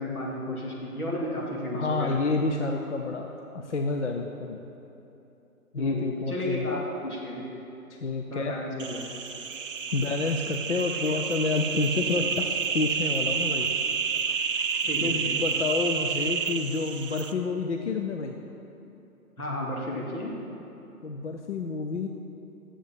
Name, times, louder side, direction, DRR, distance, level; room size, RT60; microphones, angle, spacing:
voice 1, 0.0-2.2 5.8-7.4 8.3-9.0 14.8-15.3 19.4-20.3, left 1 dB, 75° left, -3 dB, 2.4 m, -32 dB
voice 2, 1.7-4.6 5.7-6.7 8.0-8.5 9.9-13.7 15.0-18.4 21.0-22.1, left 3 dB, 50° left, 3 dB, 0.6 m, -29 dB
sound 1, 8.8-17.3, right 6 dB, 55° right, 0.6 m, -29 dB
7.2 x 7.1 x 7.2 m, 2.9 s
figure-of-eight pair, 145°, 45 cm